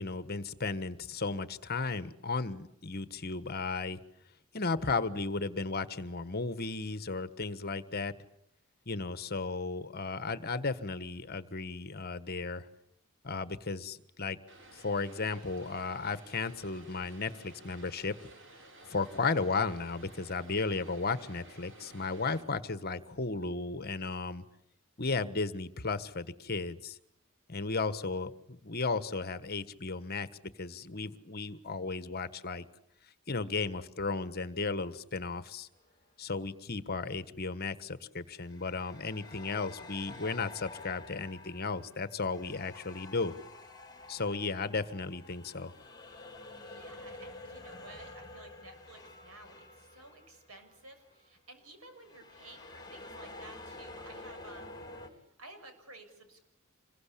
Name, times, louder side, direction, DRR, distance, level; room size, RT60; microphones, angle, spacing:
voice 1, 0.0-4.0 4.5-8.1 8.9-12.7 13.2-14.4 14.8-18.1 18.9-24.4 25.0-27.0 27.5-30.3 30.6-32.6 33.3-35.7 36.2-43.4 44.1-45.7, left 4 dB, 45° left, 13 dB, 1.4 m, -34 dB
Vehicle, 14.5-22.4, right 2 dB, 60° right, 4.6 m, -54 dB
sound 1, 35.7-36.0 38.4-50.8 51.0-51.3 52.0-55.1, left 2 dB, 20° left, 4.5 m, -49 dB
voice 2, 46.7-54.8 55.4-56.4, right 2 dB, 80° right, 7 dB, 6.9 m, -53 dB
27.5 x 22.5 x 8.5 m, 0.74 s
head